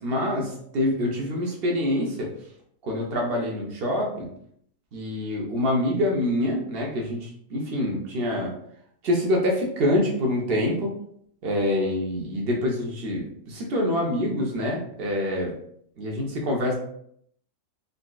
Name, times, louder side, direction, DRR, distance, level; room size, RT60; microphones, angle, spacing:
voice 1, 0.0-2.3 2.8-4.3 4.9-8.5 9.0-10.9 11.4-15.5 16.0-16.7, left 1 dB, 60° right, 0 dB, 0.6 m, -26 dB
3.8 x 2.4 x 2.2 m, 0.69 s
omnidirectional pair, 1.6 m